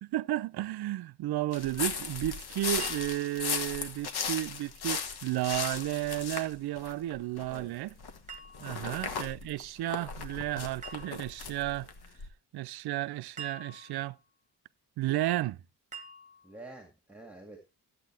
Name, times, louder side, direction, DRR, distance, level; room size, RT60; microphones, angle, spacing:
voice 1, 0.0-7.9 8.6-11.9 12.5-14.2 15.0-15.6, right 15 dB, 70° right, 0.5 m, -33 dB
sound 1, 1.5-7.6 8.0-12.3, left 6 dB, 70° left, 1.7 m, -37 dB
sound 2, 2.8-3.5 5.5-6.2 8.3-9.0 10.8-11.5 13.4-14.2 15.9-16.6, right 4 dB, 20° right, 1.4 m, -47 dB
voice 2, 16.4-17.6, right 2 dB, 5° right, 2.1 m, -49 dB
14.0 x 8.3 x 3.3 m
wide cardioid pair, 155°, 39 cm